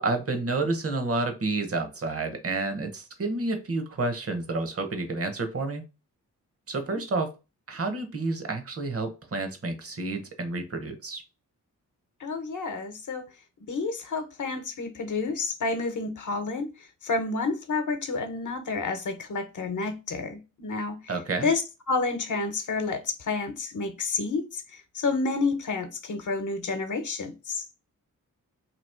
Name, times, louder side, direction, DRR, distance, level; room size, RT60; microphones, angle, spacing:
voice 1, 0.0-5.8 6.7-7.3 7.7-11.2 21.1-21.5, right 3 dB, 45° right, 1.0 m, -30 dB
voice 2, 12.2-13.2 13.6-21.0 21.4-21.6 21.9-27.6, left 3 dB, 65° left, 0.9 m, -30 dB
3.0 x 2.9 x 4.3 m
wide cardioid pair, 90°, 32 cm